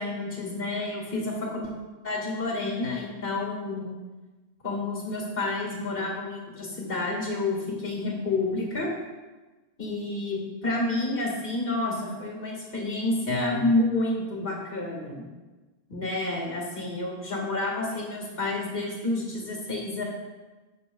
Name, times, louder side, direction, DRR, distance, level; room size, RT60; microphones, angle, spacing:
voice 1, 0.0-1.7 2.0-4.0 4.6-8.9 9.8-15.3 15.9-20.0, left 2 dB, 65° left, -1 dB, 2.0 m, -29 dB
12.5 x 6.7 x 2.3 m, 1.2 s
omnidirectional pair, 1.0 m